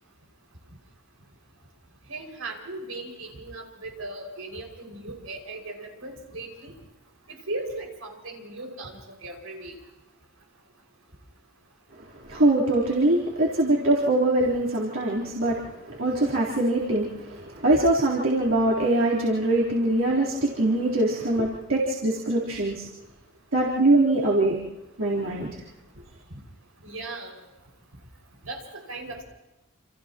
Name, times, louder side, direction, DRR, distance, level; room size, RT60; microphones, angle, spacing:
voice 1, 2.1-6.7 7.5-8.9 9.2-9.7 26.8-27.3 28.4-28.6 28.9-29.2, right 2 dB, 90° right, 1 dB, 6.1 m, -37 dB
voice 2, 12.3-15.6 16.0-17.1 17.6-22.7 23.5-24.5 25.0-25.5, right 2 dB, 70° right, -6 dB, 3.9 m, -22 dB
30.0 x 28.5 x 3.1 m, 0.95 s
head